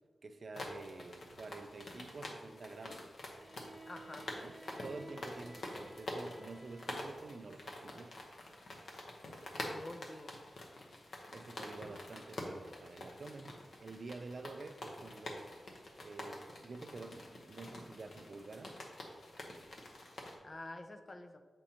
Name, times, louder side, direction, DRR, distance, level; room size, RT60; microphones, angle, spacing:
voice 1, 0.2-3.1 4.1-4.5 4.8-8.2 11.3-15.7 16.0-18.8, right 3 dB, 45° right, 7 dB, 0.4 m, -49 dB
sound 1, 0.5-20.3, left 1 dB, 65° left, 0.9 m, -47 dB
Bowed string instrument, 3.2-7.5, right 1 dB, 5° right, 1.7 m, -55 dB
voice 2, 3.9-4.3 9.6-10.4 20.4-21.4, left 2 dB, 30° left, 7 dB, 0.4 m, -48 dB
7.2 x 5.2 x 2.9 m, 1.4 s
wide cardioid pair, 165°, 0 cm